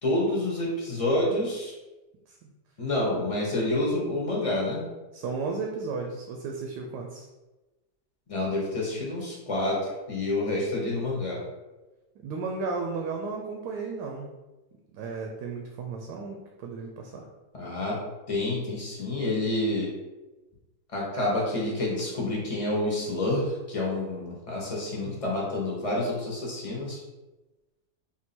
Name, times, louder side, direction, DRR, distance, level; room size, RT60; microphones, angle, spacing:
voice 1, 0.0-1.7 2.8-4.8 8.3-11.4 17.5-18.0 18.3-19.9 20.9-27.0, left 1 dB, 25° left, -4 dB, 0.9 m, -28 dB
voice 2, 5.1-7.3 12.2-14.3 14.9-17.3, right 4 dB, 85° right, 2 dB, 1.2 m, -34 dB
3.6 x 2.7 x 4.2 m, 1.1 s
omnidirectional pair, 1.7 m